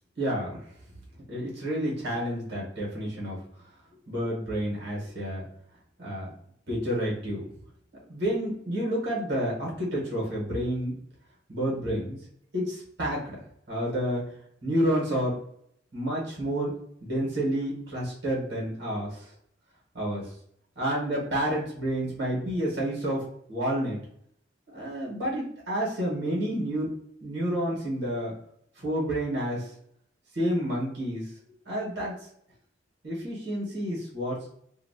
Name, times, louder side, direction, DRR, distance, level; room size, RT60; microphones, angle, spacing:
voice 1, 0.2-0.6 1.3-3.4 4.1-5.4 6.0-6.3 6.7-7.5 8.1-10.9 11.5-12.2 12.5-13.4 13.7-14.2 14.6-15.4 15.9-16.7 17.0-19.3 19.9-20.3 20.7-24.0 24.7-26.9 27.2-28.3 28.8-29.7 30.3-31.3 31.6-32.1 33.0-34.4, equal, 65° right, -4 dB, 1.3 m, -29 dB
2.8 x 2.5 x 2.7 m, 0.68 s
head